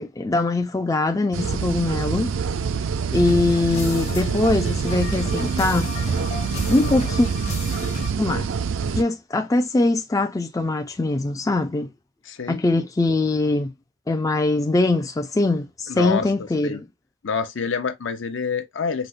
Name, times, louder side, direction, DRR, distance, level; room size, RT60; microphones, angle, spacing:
voice 1, 0.0-2.3 3.1-5.9 6.7-7.3 8.2-8.5 8.9-11.9 12.5-13.7 14.1-16.9, left 2 dB, 15° left, 0.3 m, -22 dB
sound 1, 1.3-9.0, right 6 dB, 70° right, 0.4 m, -26 dB
sound 2, 3.1-8.1, left 3 dB, 35° left, 0.8 m, -33 dB
voice 2, 12.2-12.8 15.9-16.3 16.6-16.8 17.2-19.1, left 5 dB, 65° left, 0.7 m, -27 dB
5.1 x 2.1 x 2.4 m
head